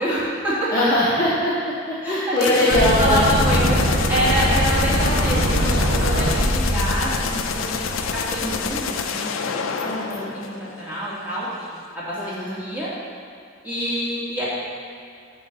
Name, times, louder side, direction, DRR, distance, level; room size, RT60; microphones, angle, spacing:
voice 1, 0.0-0.7 2.0-3.8 4.1-12.2 12.5-12.9 13.6-14.5, right 1 dB, 10° right, -9 dB, 1.8 m, -26 dB
voice 2, 0.7-3.2 9.8-10.3 12.2-12.6, left 1 dB, 15° left, -9 dB, 1.0 m, -22 dB
sound 1, 2.4-11.0, left 6 dB, 85° left, 0.5 m, -28 dB
sound 2, 2.7-8.7, equal, 65° right, 0.9 m, -22 dB
7.5 x 3.9 x 6.5 m, 2.5 s
head